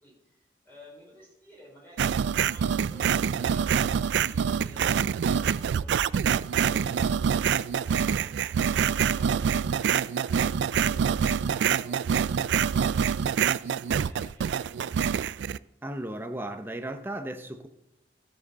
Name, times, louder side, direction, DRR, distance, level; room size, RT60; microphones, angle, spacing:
voice 1, 0.0-7.5 7.8-8.4 8.9-14.9, equal, 10° left, 4.5 m, -53 dB
sound 1, 2.0-15.6, right 7 dB, 80° right, 0.3 m, -26 dB
voice 2, 15.8-17.7, right 1 dB, 10° right, 0.7 m, -35 dB
13.0 x 7.6 x 4.2 m
head